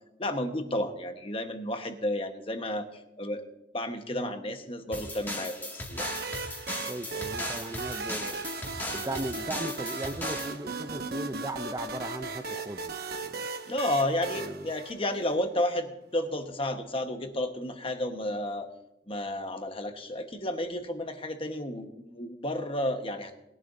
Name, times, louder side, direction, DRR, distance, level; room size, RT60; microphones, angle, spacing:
voice 1, 0.2-3.5 3.7-6.1 13.7-18.7 19.1-23.4, left 1 dB, 30° left, 6 dB, 1.2 m, -32 dB
sound 1, 4.9-10.6, left 1 dB, 10° left, 2.0 m, -37 dB
sound 2, 5.9-15.6, right 4 dB, 55° right, 0.9 m, -37 dB
voice 2, 6.9-8.5 8.9-13.5 14.4-14.7, right 1 dB, 20° right, 8 dB, 0.5 m, -37 dB
21.0 x 11.5 x 2.6 m, 0.90 s
head